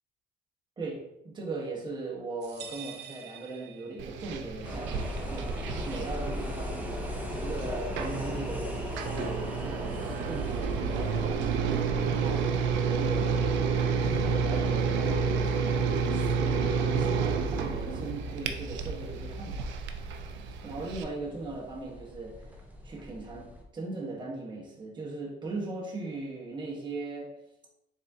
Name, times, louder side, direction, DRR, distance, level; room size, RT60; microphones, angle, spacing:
voice 1, 0.8-6.9 7.3-12.5 12.8-13.5 14.0-19.7 20.6-22.5 22.8-27.4, right 3 dB, 25° right, -3 dB, 1.1 m, -39 dB
sound 1, 2.4-4.3, right 8 dB, 65° right, 0.8 m, -46 dB
sound 2, 4.0-21.0, right 5 dB, 90° right, 0.5 m, -30 dB
sound 3, 4.6-23.6, equal, 10° right, 0.6 m, -40 dB
4.1 x 3.6 x 2.7 m, 0.84 s
cardioid pair, 115°, 19 cm